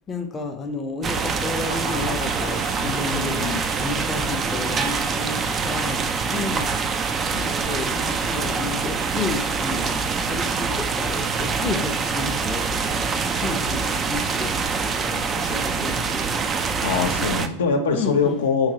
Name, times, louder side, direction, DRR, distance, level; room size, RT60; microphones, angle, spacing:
voice 1, 0.1-6.0 6.3-6.7 7.2-10.0 10.3-13.0 13.3-16.2 17.9-18.4, left 3 dB, 20° left, 3 dB, 0.5 m, -31 dB
sound 1, 1.0-17.5, right 5 dB, 25° right, 0.3 m, -25 dB
sound 2, 1.1-10.2, right 3 dB, 70° right, 1.1 m, -40 dB
voice 2, 2.8-3.7 16.8-18.7, left 5 dB, 80° left, 3 dB, 0.6 m, -24 dB
4.8 x 2.9 x 2.8 m, 0.66 s
hypercardioid pair, 100°, 0 cm